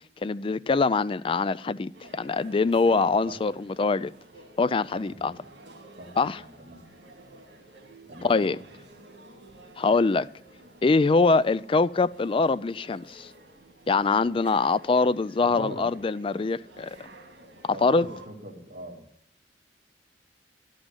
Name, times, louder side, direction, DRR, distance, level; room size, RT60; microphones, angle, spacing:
voice 1, 0.2-4.1 4.6-5.3 6.2-6.4 8.2-8.6 9.8-10.3 10.8-13.3 13.9-17.0 17.8-18.0, left 4 dB, 30° left, 0.3 m, -23 dB
sound 1, 1.9-18.3, right 2 dB, 75° right, 2.1 m, -51 dB
voice 2, 2.7-3.4 4.9-5.5 6.0-6.9 8.1-8.6 15.4-15.9 17.7-19.1, right 1 dB, 50° right, 2.2 m, -42 dB
11.0 x 6.2 x 8.2 m
head